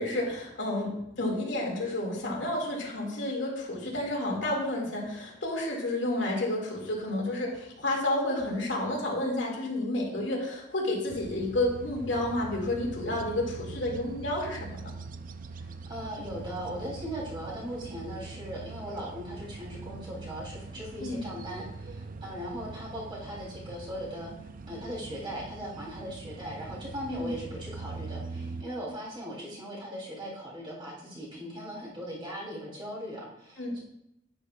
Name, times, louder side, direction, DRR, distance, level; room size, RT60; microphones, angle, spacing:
voice 1, 0.0-14.9 21.0-21.3 27.1-27.3 33.6-33.8, left 1 dB, 80° left, -1 dB, 2.3 m, -30 dB
sound 1, 11.1-28.6, right 3 dB, 45° right, 0.4 m, -42 dB
voice 2, 15.5-33.8, equal, 25° right, -5 dB, 3.4 m, -39 dB
9.7 x 9.5 x 2.4 m, 0.79 s
head